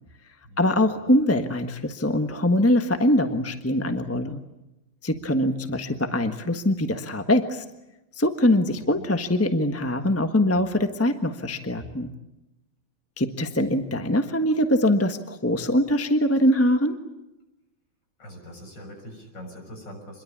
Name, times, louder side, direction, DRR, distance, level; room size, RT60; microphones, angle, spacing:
voice 1, 0.6-4.4 5.0-7.6 8.2-12.1 13.2-17.0, left 1 dB, 10° left, 7 dB, 1.1 m, -23 dB
voice 2, 8.6-9.1 18.2-20.2, equal, 55° left, 3 dB, 7.3 m, -42 dB
27.0 x 22.5 x 8.7 m, 0.93 s
omnidirectional pair, 2.3 m